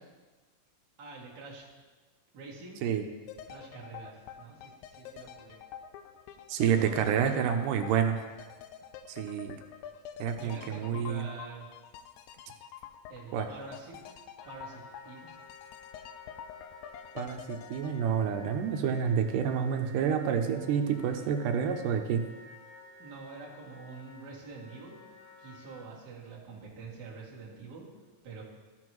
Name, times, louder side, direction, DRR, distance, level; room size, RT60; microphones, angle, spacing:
voice 1, 1.0-1.6 2.3-2.9 3.5-5.6 6.7-7.8 10.4-11.7 13.1-14.1 14.4-15.3 23.0-25.0 25.4-27.9 28.2-28.4, right 4 dB, 40° right, -5 dB, 1.7 m, -46 dB
sound 1, 3.3-19.2 19.5-19.6, left 8 dB, 85° left, 1.7 m, -47 dB
voice 2, 6.5-8.2 9.1-9.6 10.2-11.3 13.3-13.5 17.2-22.2, right 8 dB, 85° right, 6 dB, 2.2 m, -28 dB
Wind instrument woodwind instrument, 14.4-25.8, left 3 dB, 65° left, 3.1 m, -53 dB
14.0 x 6.1 x 3.0 m, 1.3 s
omnidirectional pair, 3.8 m